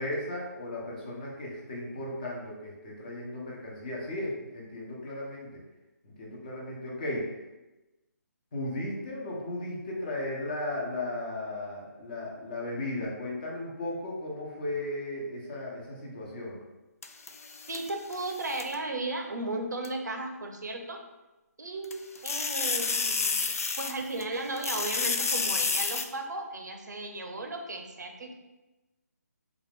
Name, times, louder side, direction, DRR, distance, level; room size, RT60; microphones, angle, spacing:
voice 1, 0.0-5.6 6.0-7.3 8.5-16.6, left 1 dB, 30° left, -3 dB, 0.9 m, -36 dB
sound 1, 17.0-18.7 19.8-19.9 21.8-24.2 24.6-26.0, left 4 dB, 55° left, 0.4 m, -30 dB
voice 2, 17.7-21.0 21.6-28.3, right 2 dB, 85° right, 4 dB, 0.7 m, -35 dB
4.2 x 2.4 x 3.5 m, 1.1 s
hypercardioid pair, 170°, 9 cm